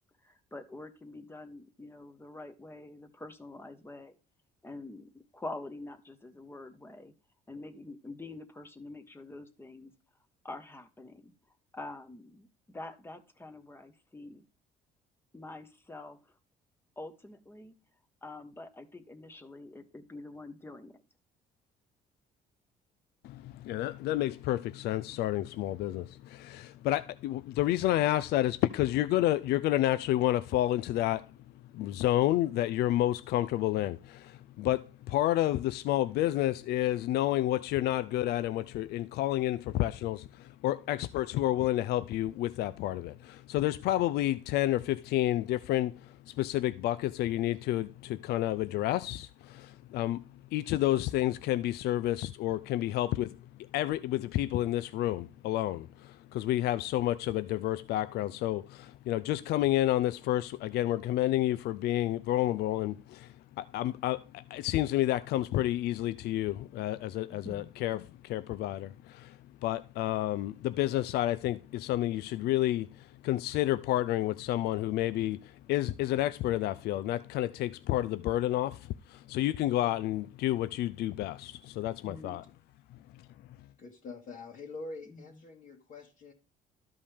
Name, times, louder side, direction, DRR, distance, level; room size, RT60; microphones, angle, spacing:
voice 1, 0.2-4.1 4.6-7.1 7.5-9.9 10.4-11.3 11.7-14.4 15.3-16.3 17.0-17.7 18.2-21.0 67.3-67.7 82.0-82.4 85.1-85.2, left 2 dB, 15° left, 1.1 m, -46 dB
voice 2, 23.2-31.3 31.7-50.2 50.5-82.4 83.1-83.3, left 14 dB, 70° left, 0.4 m, -30 dB
voice 3, 83.8-86.3, left 3 dB, 55° left, 1.8 m, -45 dB
12.5 x 5.3 x 3.4 m
cardioid pair, 110°, 17 cm